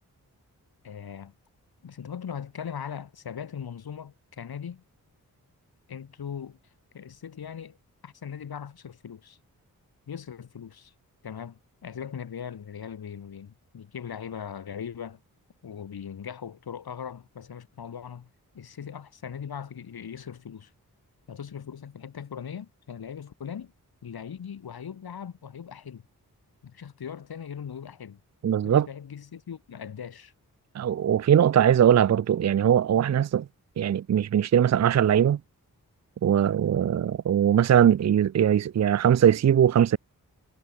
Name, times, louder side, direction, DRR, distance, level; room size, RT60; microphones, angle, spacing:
voice 1, 0.8-1.3 1.8-4.8 5.9-6.6 6.9-7.8 8.0-9.4 10.1-10.9 11.2-15.2 15.6-18.3 18.5-20.7 21.3-23.7 24.0-26.0 26.6-28.2 28.6-30.3, left 8 dB, 80° left, 5.3 m, -39 dB
voice 2, 28.4-28.9 30.7-33.5 33.8-35.4 36.2-40.0, right 9 dB, 45° right, 0.5 m, -21 dB
cardioid pair, 45°, 36 cm